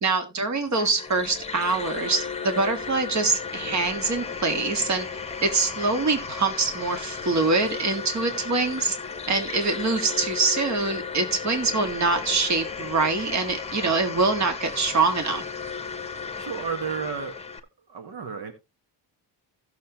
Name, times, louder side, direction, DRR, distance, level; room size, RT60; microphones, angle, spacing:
voice 1, 0.0-5.1 5.4-8.9 9.3-15.4, right 3 dB, 40° right, 1.9 m, -24 dB
sound 1, 0.6-17.6, left 5 dB, 15° left, 1.0 m, -35 dB
voice 2, 16.4-17.4 17.9-18.5, right 6 dB, 65° right, 1.6 m, -32 dB
16.0 x 6.7 x 2.9 m
cardioid pair, 140°, 41 cm